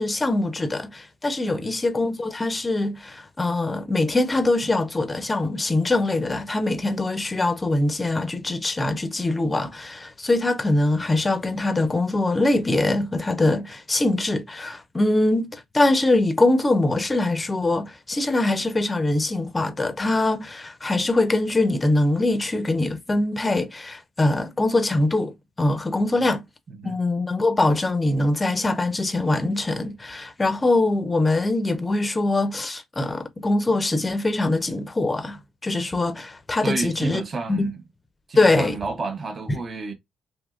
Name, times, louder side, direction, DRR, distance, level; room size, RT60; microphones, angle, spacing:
voice 1, 0.0-26.4 26.8-37.2 37.5-37.7 38.4-38.8, left 2 dB, 20° left, 0.6 m, -23 dB
voice 2, 26.7-27.0 36.6-37.8 38.3-39.9, right 3 dB, 35° right, 0.8 m, -31 dB
3.5 x 2.7 x 2.3 m
cardioid pair, 90°, 0 cm